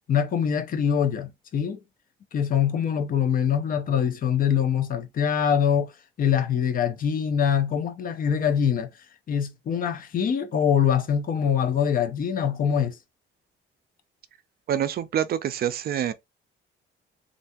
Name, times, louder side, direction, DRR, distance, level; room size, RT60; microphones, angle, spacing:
voice 1, 0.1-1.8 2.3-5.9 6.2-8.9 9.3-13.0, left 8 dB, 45° left, 0.7 m, -24 dB
voice 2, 14.7-16.1, right 10 dB, 50° right, 0.5 m, -26 dB
3.3 x 2.6 x 2.8 m
cardioid pair, 145°, 21 cm